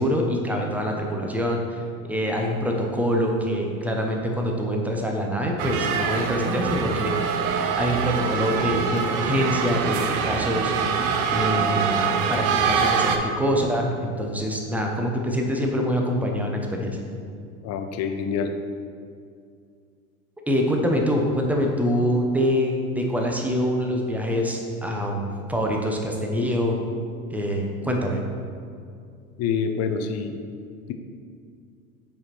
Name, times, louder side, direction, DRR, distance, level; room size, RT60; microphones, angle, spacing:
voice 1, 0.0-7.4 7.8-10.7 11.3-17.0 20.5-26.8 27.3-28.2, equal, 5° right, 0 dB, 0.7 m, -25 dB
sound 1, 5.6-13.2, right 6 dB, 50° right, 0.7 m, -24 dB
voice 2, 17.6-18.5 29.4-30.3, left 6 dB, 40° left, 7 dB, 0.6 m, -26 dB
5.3 x 4.4 x 4.3 m, 2.3 s
hypercardioid pair, 85°, 42 cm